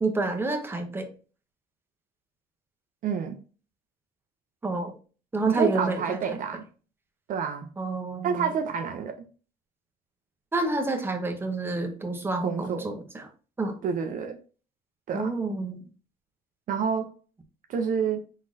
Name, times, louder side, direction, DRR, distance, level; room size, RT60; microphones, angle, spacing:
voice 1, 0.0-1.1 4.6-4.9 5.3-6.2 7.8-8.5 10.5-13.3 13.6-13.8 15.1-15.8, right 2 dB, 15° right, 0.8 m, -28 dB
voice 2, 3.0-3.4 5.5-6.7 7.3-7.7 8.2-9.2 12.4-12.9 13.8-14.4 15.1-15.3 16.7-17.1 17.7-18.2, right 6 dB, 50° right, 0.5 m, -28 dB
3.7 x 3.6 x 2.6 m
cardioid pair, 110°, 17 cm